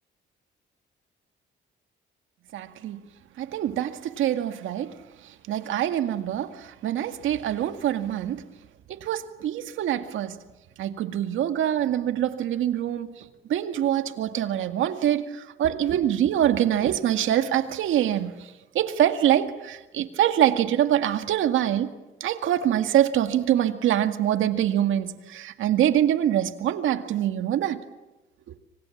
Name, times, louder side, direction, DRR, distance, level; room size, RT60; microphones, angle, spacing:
voice 1, 2.5-3.0 3.4-8.4 8.9-10.4 10.8-21.9 22.2-27.8, right 11 dB, 80° right, 2.1 m, -25 dB
28.0 x 25.5 x 7.3 m
cardioid pair, 90°, 20 cm